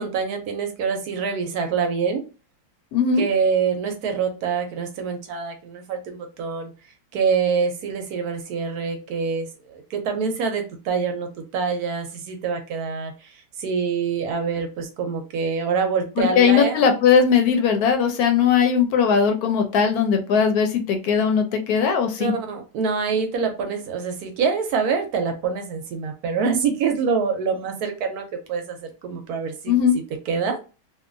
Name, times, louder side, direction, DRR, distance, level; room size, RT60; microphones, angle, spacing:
voice 1, 0.0-2.2 3.2-6.7 7.1-13.3 13.6-16.8 22.2-29.5 30.3-30.6, right 5 dB, 70° right, 5 dB, 1.0 m, -25 dB
voice 2, 2.9-3.3 16.2-22.3 29.7-29.9, left 6 dB, 70° left, 4 dB, 1.0 m, -19 dB
2.8 x 2.4 x 2.5 m, 0.32 s
omnidirectional pair, 1.8 m